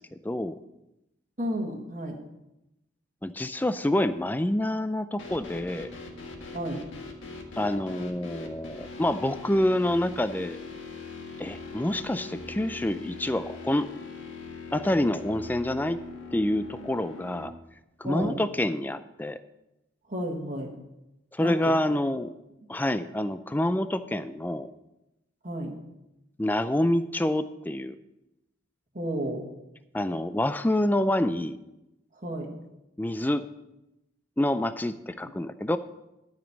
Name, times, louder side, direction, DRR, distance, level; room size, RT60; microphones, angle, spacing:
voice 1, 0.2-0.6 3.2-5.9 7.6-10.6 11.4-13.9 14.7-16.0 16.3-17.5 18.0-19.4 21.3-22.3 22.7-24.7 26.4-28.0 29.9-31.6 33.0-33.4 34.4-35.8, left 1 dB, 10° left, 11 dB, 0.3 m, -27 dB
voice 2, 1.4-2.2 6.5-6.8 18.0-18.4 20.1-20.7 21.4-21.6 25.4-25.8 28.9-29.5 32.1-32.5, equal, 40° right, 1 dB, 1.5 m, -32 dB
sound 1, 5.2-17.4, left 3 dB, 75° left, 1.7 m, -41 dB
12.5 x 5.2 x 7.0 m, 0.92 s
head